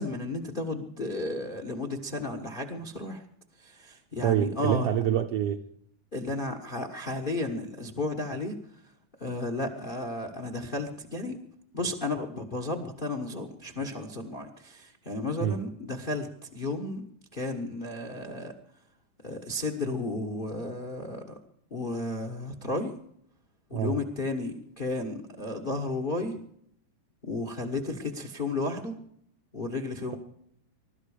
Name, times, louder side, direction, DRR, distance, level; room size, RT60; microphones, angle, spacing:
voice 1, 0.0-3.2 3.6-4.9 6.1-8.6 9.2-11.4 11.7-17.0 17.3-18.5 19.2-21.4 21.7-22.9 23.7-26.4 27.2-29.0 29.5-30.2, left 2 dB, 85° left, 0.4 m, -33 dB
voice 2, 4.2-5.6 15.4-15.7 23.7-24.0, right 10 dB, 75° right, 1.4 m, -26 dB
22.0 x 12.5 x 5.0 m
omnidirectional pair, 3.5 m